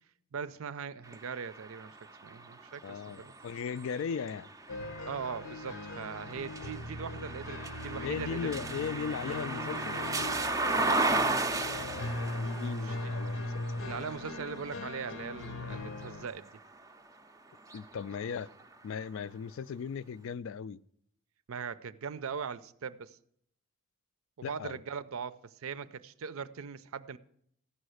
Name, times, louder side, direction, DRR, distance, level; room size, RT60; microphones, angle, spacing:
voice 1, 0.3-2.0 2.2-3.3 5.1-9.0 10.8-11.1 12.8-13.1 13.8-16.5 21.5-23.2 24.4-27.2, right 6 dB, 80° right, 0.5 m, -40 dB
sound 1, 1.1-17.0 17.6-18.8, right 2 dB, 15° right, 0.4 m, -36 dB
voice 2, 2.8-4.5 8.0-10.0 12.2-13.8 17.7-18.5 18.8-20.8 24.4-24.8, left 6 dB, 70° left, 0.3 m, -37 dB
sound 2, 4.7-16.3, left 2 dB, 90° left, 0.9 m, -40 dB
14.5 x 5.6 x 6.4 m
head